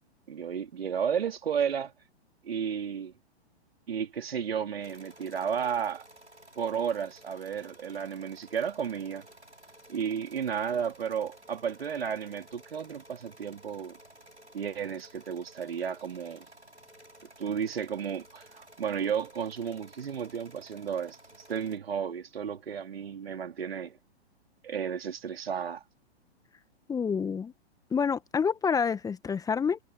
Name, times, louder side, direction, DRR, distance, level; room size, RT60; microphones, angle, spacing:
voice 1, 0.3-1.9 2.4-3.1 3.9-6.1 6.6-9.3 9.9-14.0 14.5-16.5 17.4-21.2 21.5-24.0 24.6-25.8, right 7 dB, 65° right, 4.5 m, -33 dB
sound 1, 4.8-21.8, right 1 dB, 90° right, 7.4 m, -55 dB
voice 2, 26.9-27.5 27.9-29.8, left 6 dB, 10° left, 1.6 m, -28 dB
figure-of-eight pair, 115°, 33 cm